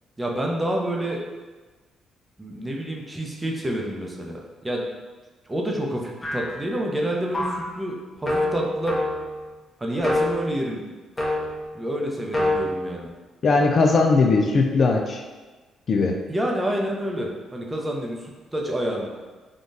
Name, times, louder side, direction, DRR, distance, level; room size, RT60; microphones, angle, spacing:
voice 1, 0.2-1.2 2.4-4.9 5.5-9.0 9.8-10.8 11.7-13.1 16.3-19.1, right 1 dB, 15° right, -1 dB, 0.6 m, -28 dB
sound 1, 6.2-6.7 7.3-7.7 8.3-9.4 10.0-10.5 11.2-11.6 12.3-12.6, left 1 dB, 25° left, 0.8 m, -25 dB
voice 2, 13.4-15.2 15.9-16.2, left 3 dB, 50° left, 3 dB, 0.3 m, -19 dB
3.7 x 2.4 x 2.6 m, 1.3 s
cardioid pair, 90°, 0 cm